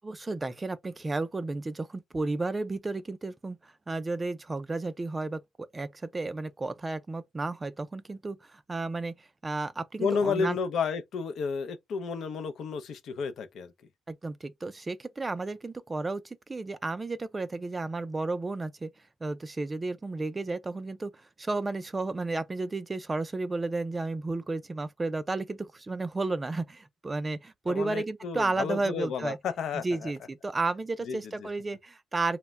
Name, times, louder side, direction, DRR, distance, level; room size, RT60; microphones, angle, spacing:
voice 1, 0.0-5.4 5.7-10.6 14.1-16.2 16.5-18.9 19.2-29.4 29.8-32.4, right 3 dB, 25° right, 0.3 m, -33 dB
voice 2, 10.0-13.7 27.7-30.1 31.1-31.5, left 5 dB, 70° left, 0.4 m, -32 dB
2.1 x 2.0 x 3.3 m
cardioid pair, 90°, 0 cm